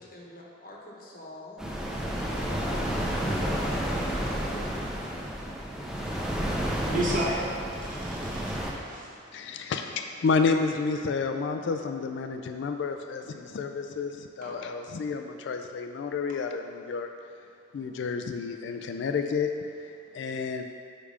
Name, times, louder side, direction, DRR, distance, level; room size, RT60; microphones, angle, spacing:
voice 1, 0.0-1.6 2.3-5.2, left 2 dB, 45° left, -3 dB, 1.0 m, -43 dB
sound 1, 1.6-8.7, equal, 5° right, 0.5 m, -31 dB
voice 2, 6.6-7.5 7.8-8.6 8.9-9.1 14.4-14.5, right 1 dB, 45° right, -5 dB, 1.1 m, -32 dB
voice 3, 9.3-17.1 17.7-20.6, left 4 dB, 60° left, 5 dB, 0.3 m, -30 dB
5.2 x 4.8 x 5.0 m, 2.4 s
head